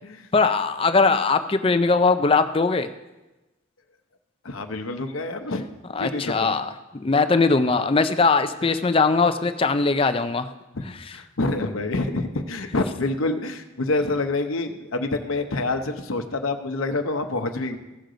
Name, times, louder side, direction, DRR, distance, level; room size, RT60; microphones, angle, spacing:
voice 1, 0.3-2.9 5.9-10.5, left 4 dB, 25° left, 9 dB, 0.4 m, -20 dB
voice 2, 4.4-5.7 6.0-6.6 8.6-8.7 10.7-10.9 11.1-17.8, left 2 dB, 85° left, 6 dB, 0.8 m, -27 dB
15.5 x 6.5 x 3.9 m, 1.0 s
head